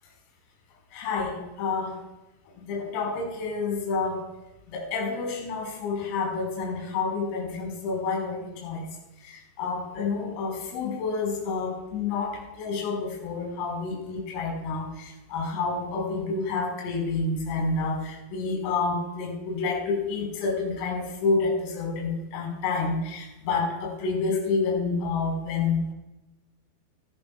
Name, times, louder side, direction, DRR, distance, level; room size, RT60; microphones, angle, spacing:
voice 1, 0.9-2.0 2.6-4.3 4.7-8.9 9.2-25.9, left 4 dB, 45° left, 1 dB, 4.6 m, -29 dB
17.0 x 13.5 x 2.3 m, 1.0 s
figure-of-eight pair, 90°, 0 cm